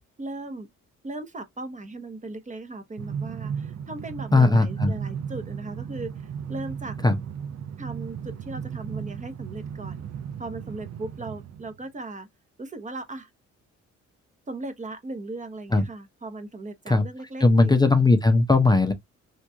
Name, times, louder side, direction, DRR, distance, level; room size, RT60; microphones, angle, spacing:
voice 1, 0.2-0.7 1.0-6.1 6.5-7.0 7.8-10.1 10.4-12.3 12.6-13.3 14.5-17.7, right 2 dB, 25° right, 0.8 m, -37 dB
Train, 3.0-11.8, right 7 dB, 60° right, 0.7 m, -35 dB
voice 2, 4.3-4.9 7.0-7.2 15.7-15.8 16.9-17.0 17.4-18.9, left 3 dB, 15° left, 0.6 m, -18 dB
3.0 x 2.5 x 3.4 m
cardioid pair, 90°, 30 cm